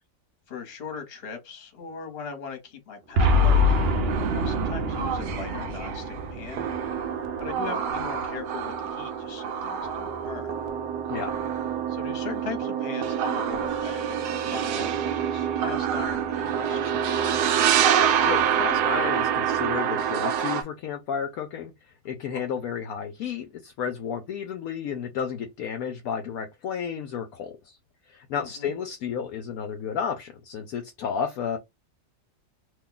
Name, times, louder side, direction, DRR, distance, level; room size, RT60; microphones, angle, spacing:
voice 1, 0.5-3.8 4.3-6.6 7.4-10.5 11.9-17.2 17.4-17.5 22.3-22.5 28.3-28.7, left 6 dB, 40° left, 1.1 m, -39 dB
Boom, 3.2-7.6, left 2 dB, 60° right, 0.6 m, -25 dB
sound 1, 3.2-20.6, right 8 dB, 75° right, 1.1 m, -27 dB
voice 2, 18.2-27.8 28.1-31.6, left 7 dB, 70° left, 1.0 m, -32 dB
2.9 x 2.3 x 3.8 m
omnidirectional pair, 1.7 m